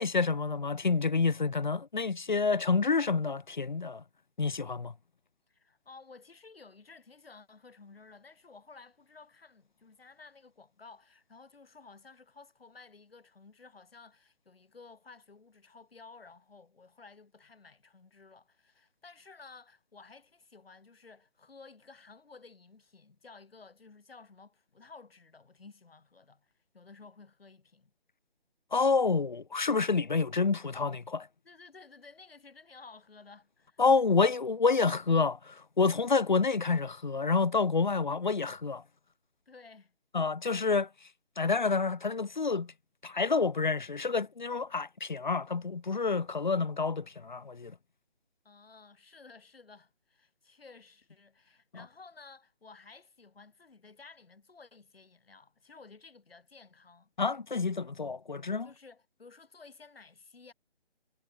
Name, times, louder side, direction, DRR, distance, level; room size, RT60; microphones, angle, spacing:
voice 1, 0.0-4.0 4.4-4.9 28.7-31.3 33.8-38.8 40.1-40.9 41.4-42.7 43.0-47.7 57.2-58.7, left 4 dB, 45° left, 0.4 m, -28 dB
voice 2, 5.5-27.9 31.4-33.8 39.5-39.9 48.4-57.1 58.6-60.5, left 4 dB, 60° left, 6.4 m, -54 dB
hypercardioid pair, 175°, 33 cm